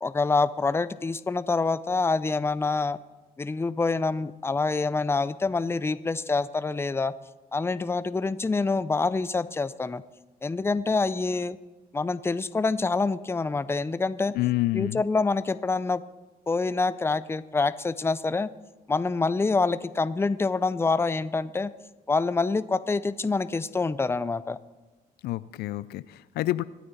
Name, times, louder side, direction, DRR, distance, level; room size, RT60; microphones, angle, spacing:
voice 1, 0.0-3.0 3.4-7.1 7.5-10.0 10.4-11.6 11.9-14.3 14.7-16.0 16.5-18.5 18.9-21.7 22.1-24.6, left 3 dB, 15° left, 15 dB, 0.5 m, -26 dB
voice 2, 14.4-15.0 25.2-26.6, left 16 dB, 85° left, 17 dB, 0.4 m, -28 dB
24.5 x 9.3 x 4.1 m, 1.1 s
cardioid pair, 95°, 16 cm